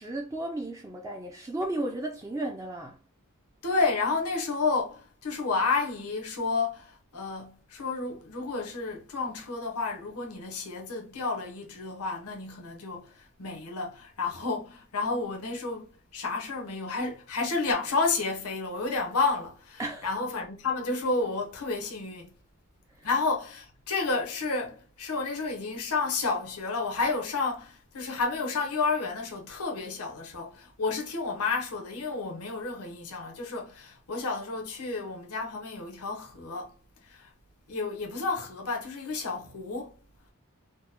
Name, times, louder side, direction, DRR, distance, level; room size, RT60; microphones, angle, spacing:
voice 1, 0.0-3.0 19.8-20.1, right 1 dB, 15° right, 0.4 m, -34 dB
voice 2, 3.6-22.3 23.0-36.7 37.1-37.3 37.7-40.0, left 3 dB, 90° left, 0.9 m, -31 dB
3.7 x 2.1 x 2.8 m
head